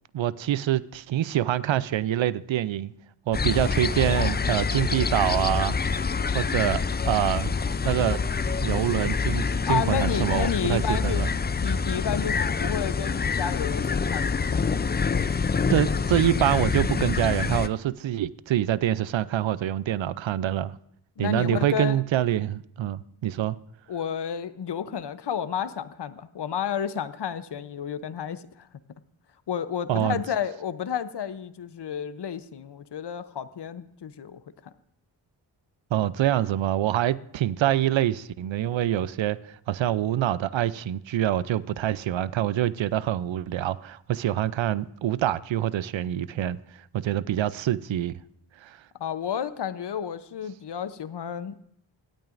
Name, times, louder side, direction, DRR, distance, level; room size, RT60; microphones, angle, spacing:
voice 1, 0.1-2.9 3.3-5.8 6.3-7.5 7.8-8.2 8.6-11.3 15.7-20.8 21.2-23.6 29.9-30.2 35.9-46.6 46.9-48.1 48.6-48.8, right 12 dB, 70° right, 0.6 m, -25 dB
sound 1, 3.3-17.7, left 5 dB, 25° left, 0.4 m, -26 dB
voice 2, 9.7-11.3 11.6-14.8 21.2-22.0 23.9-28.7 29.5-34.7 49.0-51.6, left 8 dB, 55° left, 0.8 m, -31 dB
25.0 x 8.9 x 2.5 m
cardioid pair, 45°, 48 cm